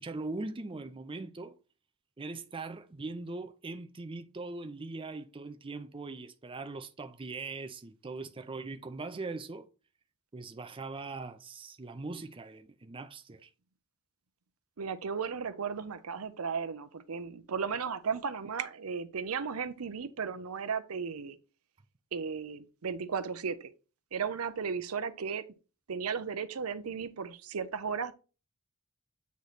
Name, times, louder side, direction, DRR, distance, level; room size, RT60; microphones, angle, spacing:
voice 1, 0.0-1.5 2.2-9.7 10.3-13.5, right 3 dB, 25° right, 0.5 m, -41 dB
voice 2, 14.8-21.4 22.1-23.7 24.1-25.4 25.9-28.1, right 6 dB, 85° right, 0.6 m, -35 dB
8.1 x 3.1 x 4.1 m
head